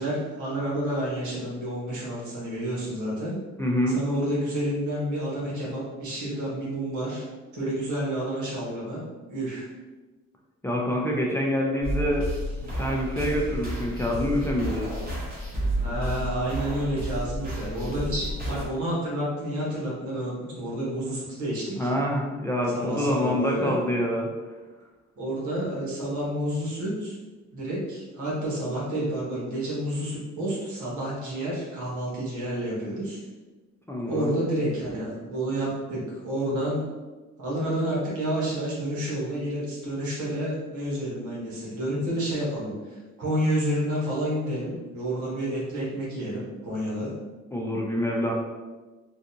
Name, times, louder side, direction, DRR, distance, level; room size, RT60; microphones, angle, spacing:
voice 1, 0.0-3.4 3.9-7.3 7.5-9.7 15.8-21.9 22.7-23.7 25.2-27.2 27.5-33.2 34.1-36.8 37.4-47.1, right 1 dB, 75° right, -5 dB, 1.4 m, -29 dB
voice 2, 3.6-4.0 10.6-12.3 12.6-14.9 21.8-24.3 33.9-34.3 47.5-48.3, equal, 10° left, -2 dB, 0.5 m, -26 dB
sound 1, 11.8-18.7, equal, 30° right, 1.2 m, -31 dB
3.7 x 2.4 x 2.7 m, 1.3 s
cardioid pair, 90°, 30 cm